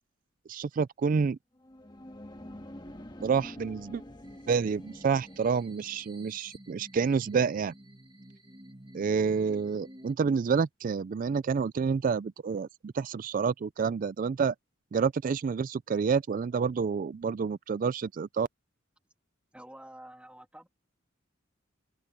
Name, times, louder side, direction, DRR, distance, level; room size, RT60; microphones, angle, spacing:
voice 1, 0.5-1.4 3.2-4.0 4.5-7.7 8.9-14.5 14.9-18.5, right 5 dB, 45° right, 0.3 m, -28 dB
sound 1, 1.6-6.2, left 1 dB, 25° left, 1.6 m, -47 dB
sound 2, 4.2-10.1, right 1 dB, 25° right, 2.2 m, -52 dB
voice 2, 19.5-20.7, right 1 dB, 5° right, 2.9 m, -48 dB
open air
head